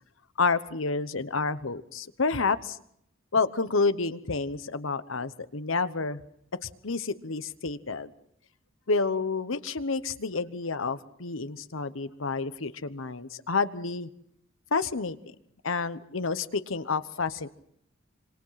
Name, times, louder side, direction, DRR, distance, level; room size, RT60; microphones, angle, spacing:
voice 1, 0.4-2.8 3.3-6.2 6.8-8.1 8.9-14.1 14.7-15.2 15.6-17.5, left 4 dB, 80° left, 13 dB, 1.1 m, -29 dB
26.5 x 24.5 x 5.8 m, 0.71 s
head